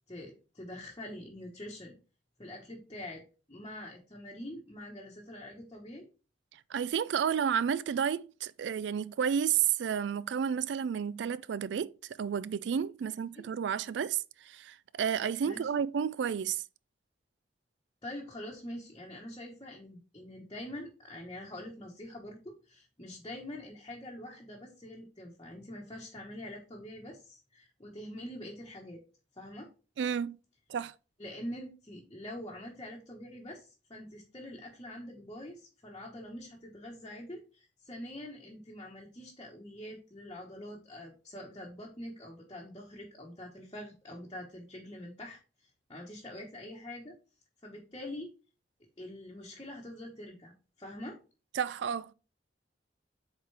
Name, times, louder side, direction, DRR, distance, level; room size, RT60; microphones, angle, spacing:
voice 1, 0.1-2.0 2.4-3.2 3.5-6.1 13.3-13.5 15.4-15.8 18.0-29.0 29.3-29.7 31.2-47.2 47.6-48.3 49.0-51.2, left 1 dB, 25° left, 1.2 m, -45 dB
voice 2, 6.7-16.6 30.0-30.4 30.7-30.9 51.5-52.1, right 8 dB, 70° right, 0.3 m, -31 dB
8.0 x 3.7 x 3.3 m
head